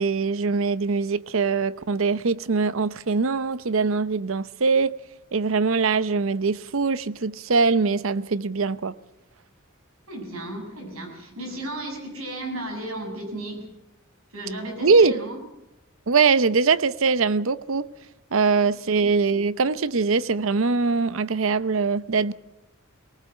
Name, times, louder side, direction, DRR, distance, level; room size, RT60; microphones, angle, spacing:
voice 1, 0.0-5.0 5.3-8.9 14.8-15.2 16.1-17.9 18.3-22.3, right 4 dB, 70° right, 0.7 m, -22 dB
voice 2, 10.1-13.7 14.3-15.4 18.9-19.0, right 1 dB, 85° right, 6.8 m, -34 dB
20.0 x 19.0 x 7.7 m
head